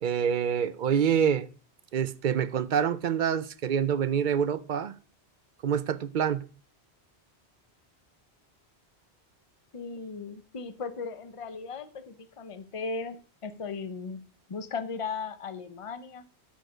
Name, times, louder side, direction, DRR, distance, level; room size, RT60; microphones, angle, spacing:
voice 1, 0.0-1.5 1.9-4.9 5.6-6.4, right 8 dB, 55° right, 0.7 m, -26 dB
voice 2, 9.7-14.2 14.5-16.3, left 4 dB, 35° left, 0.8 m, -37 dB
11.5 x 6.6 x 5.1 m
omnidirectional pair, 1.1 m